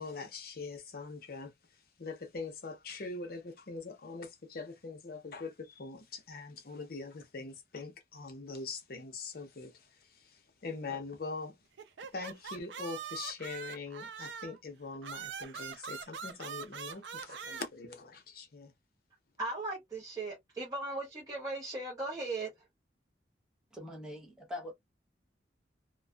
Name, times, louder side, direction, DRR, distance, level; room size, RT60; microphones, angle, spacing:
voice 1, 0.0-1.5 2.0-9.7 10.6-11.5 12.1-18.7, left 3 dB, 55° left, 0.7 m, -42 dB
sound 1, 11.8-14.6 15.0-17.7, right 6 dB, 85° right, 0.5 m, -43 dB
voice 2, 19.4-22.5, right 2 dB, 20° right, 1.0 m, -37 dB
voice 3, 23.7-24.7, left 1 dB, 5° right, 0.7 m, -43 dB
2.5 x 2.3 x 2.2 m
head